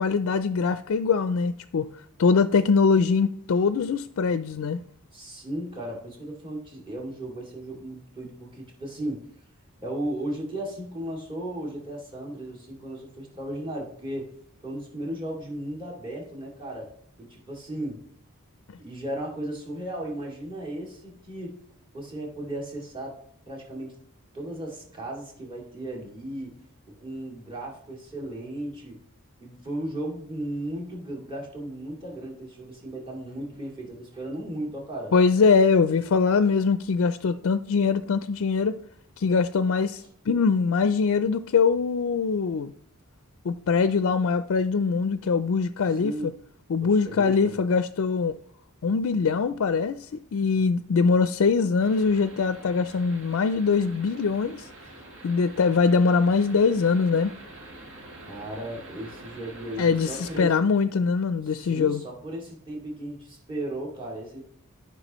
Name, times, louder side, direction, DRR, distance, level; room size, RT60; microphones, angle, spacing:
voice 1, 0.0-1.9 2.2-4.8 35.1-38.8 39.2-42.7 43.4-46.3 46.7-48.4 48.8-54.7 55.2-57.3 59.8-62.0, left 5 dB, 60° left, 0.4 m, -22 dB
voice 2, 5.1-9.3 9.8-14.3 14.6-16.9 17.2-18.0 18.8-21.6 21.9-23.2 23.5-24.0 24.3-26.6 26.9-29.0 29.4-35.1 45.9-46.3 46.8-47.5 58.3-60.5 61.4-64.4, right 1 dB, 25° right, 2.4 m, -35 dB
sound 1, 51.8-60.4, right 1 dB, 60° right, 2.2 m, -46 dB
14.0 x 5.7 x 3.0 m
head